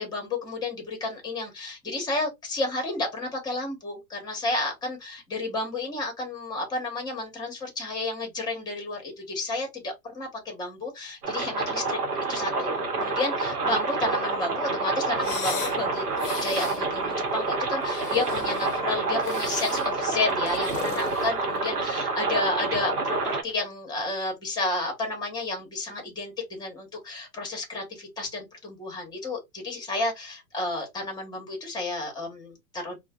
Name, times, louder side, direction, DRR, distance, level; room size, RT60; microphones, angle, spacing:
voice 1, 0.0-12.0 12.3-33.0, left 2 dB, 10° left, 1.0 m, -31 dB
sound 1, 11.2-23.4, right 3 dB, 80° right, 0.9 m, -28 dB
sound 2, 15.2-15.8 16.1-16.8 17.7-18.8 19.2-19.9 20.3-21.8, left 6 dB, 25° left, 0.7 m, -36 dB
2.4 x 2.2 x 2.4 m
figure-of-eight pair, 110°, 46 cm